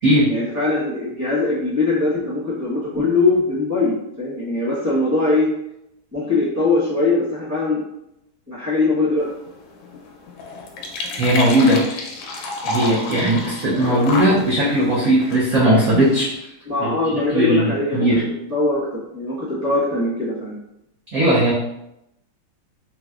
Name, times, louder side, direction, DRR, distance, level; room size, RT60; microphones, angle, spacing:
voice 1, 0.3-5.5 6.1-7.8 8.5-9.3 13.6-14.1 16.7-18.1 18.5-20.5, left 3 dB, 15° right, -9 dB, 0.7 m, -21 dB
sound 1, 9.2-16.4, left 2 dB, 75° left, 1.2 m, -31 dB
voice 2, 11.2-11.8 12.6-16.5 16.8-16.9 17.3-18.2 21.1-21.5, right 1 dB, 85° right, -7 dB, 0.7 m, -18 dB
4.1 x 2.1 x 2.3 m, 0.84 s
omnidirectional pair, 2.3 m